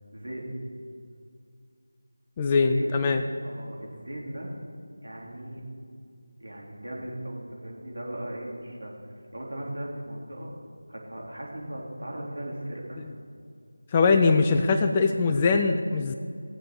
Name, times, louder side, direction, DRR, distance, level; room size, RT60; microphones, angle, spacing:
voice 1, 0.1-0.5 2.5-3.1 3.4-4.5 5.0-5.6 6.4-10.5 10.9-13.0, right 1 dB, 70° right, -2 dB, 3.8 m, -38 dB
voice 2, 2.4-3.2 13.9-16.1, left 4 dB, 15° left, 6 dB, 0.5 m, -22 dB
19.0 x 7.7 x 6.6 m, 2.3 s
figure-of-eight pair, 165°, 0 cm